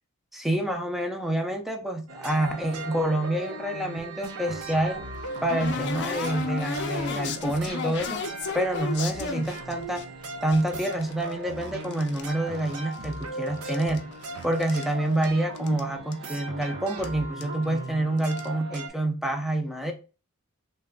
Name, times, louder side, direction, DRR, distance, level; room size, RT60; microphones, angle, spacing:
voice 1, 0.3-5.0 5.4-8.2 8.5-10.1 10.4-14.0 14.4-19.9, right 1 dB, ahead, 3 dB, 0.5 m, -27 dB
sound 1, 2.1-18.9, right 2 dB, 85° right, 0.6 m, -38 dB
sound 2, 4.6-10.0 10.5-12.3 12.5-13.3 13.6-14.9 15.2-15.3 15.6-15.8 16.1-16.2 17.0-17.1 17.4-17.6 18.2-18.5, left 4 dB, 55° left, 0.5 m, -34 dB
3.3 x 2.2 x 3.7 m, 0.33 s
head